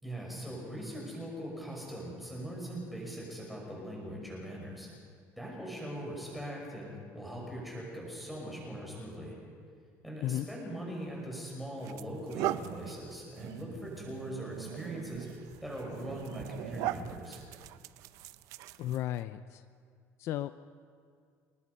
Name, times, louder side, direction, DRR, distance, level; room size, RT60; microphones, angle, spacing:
voice 1, 0.0-4.9 5.4-9.3 10.0-17.4, equal, ahead, -3 dB, 5.8 m, -41 dB
sound 1, 11.0-11.2 11.8-19.2, right 14 dB, 65° right, 0.6 m, -40 dB
voice 2, 18.8-19.6 20.2-20.5, left 13 dB, 50° left, 12 dB, 0.5 m, -34 dB
28.5 x 19.5 x 5.5 m, 2.2 s
cardioid pair, 180°, 6 cm